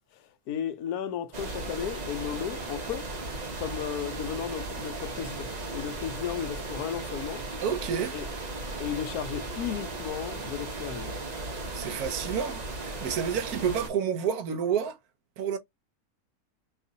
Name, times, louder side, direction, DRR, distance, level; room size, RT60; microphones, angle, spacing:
voice 1, 0.1-3.1 3.6-7.4 8.1-8.3 8.8-11.2, left 9 dB, 80° left, 1.1 m, -34 dB
sound 1, 1.3-13.9, right 2 dB, 40° right, 0.6 m, -36 dB
voice 2, 7.6-8.2 11.7-15.0 15.4-15.6, right 7 dB, 75° right, 1.1 m, -29 dB
2.9 x 2.4 x 3.8 m
omnidirectional pair, 1.6 m